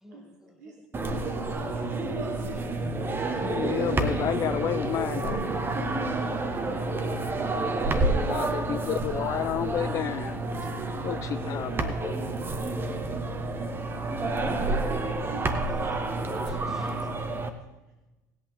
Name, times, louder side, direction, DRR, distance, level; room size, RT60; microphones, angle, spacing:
voice 1, 0.0-1.2 15.3-17.4, equal, 5° right, 6 dB, 1.2 m, -50 dB
voice 2, 0.6-2.7, right 2 dB, 70° right, 0 dB, 2.5 m, -44 dB
sound 1, 0.9-17.5, right 2 dB, 25° right, 1.3 m, -29 dB
voice 3, 3.4-5.4 8.3-10.4 11.0-12.1, left 11 dB, 35° left, 12 dB, 0.3 m, -30 dB
19.0 x 8.4 x 3.7 m, 1.1 s
figure-of-eight pair, 65°, 9 cm